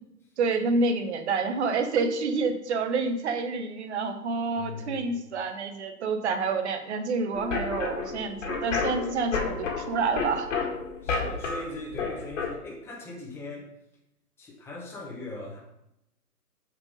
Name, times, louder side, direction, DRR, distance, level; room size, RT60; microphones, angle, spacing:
voice 1, 0.4-10.5, right 4 dB, 45° right, 7 dB, 1.1 m, -28 dB
voice 2, 4.6-5.3 11.0-13.7 14.4-15.6, left 2 dB, 5° left, -3 dB, 1.1 m, -40 dB
sound 1, 7.3-12.5, left 4 dB, 50° left, 1.8 m, -31 dB
6.8 x 4.6 x 5.2 m, 0.84 s
hypercardioid pair, 140°, 47 cm